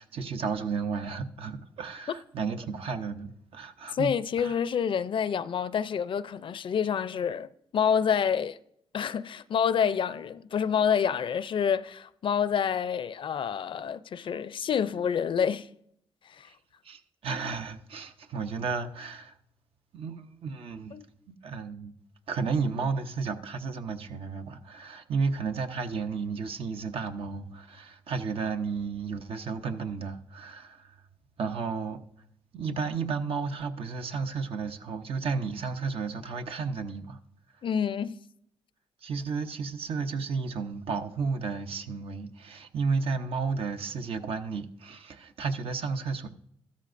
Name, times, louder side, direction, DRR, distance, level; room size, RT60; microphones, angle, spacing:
voice 1, 0.0-4.6 16.8-19.3 19.9-20.9 21.3-22.0 22.3-30.9 31.4-32.0 32.5-37.2 39.0-46.3, right 5 dB, 70° right, 0.8 m, -33 dB
voice 2, 3.9-7.5 7.7-8.6 8.9-15.7 16.3-16.5 20.9-21.1 37.6-38.2, left 7 dB, 55° left, 0.4 m, -28 dB
14.0 x 13.0 x 2.6 m
cardioid pair, 80°, 10 cm